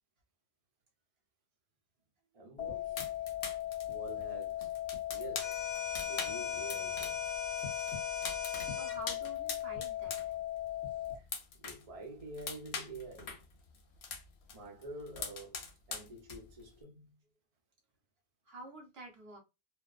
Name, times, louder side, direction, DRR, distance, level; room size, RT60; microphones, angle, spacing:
voice 1, 2.3-3.0 3.9-4.7 5.1-5.6 6.0-7.2 11.1-11.3 11.6-13.5 14.5-15.6 15.9-17.1, right 2 dB, 40° right, 0.7 m, -48 dB
sound 1, 2.6-11.2, left 13 dB, 10° left, 1.0 m, -38 dB
sound 2, 3.0-7.3 7.6-10.3 10.6-11.9 12.2-14.6 14.8-16.6, left 5 dB, 90° left, 0.9 m, -42 dB
sound 3, 5.4-9.0, left 4 dB, 55° left, 0.6 m, -41 dB
voice 2, 8.2-10.4 18.4-19.4, right 1 dB, 70° right, 1.0 m, -50 dB
2.7 x 2.1 x 2.3 m
omnidirectional pair, 1.1 m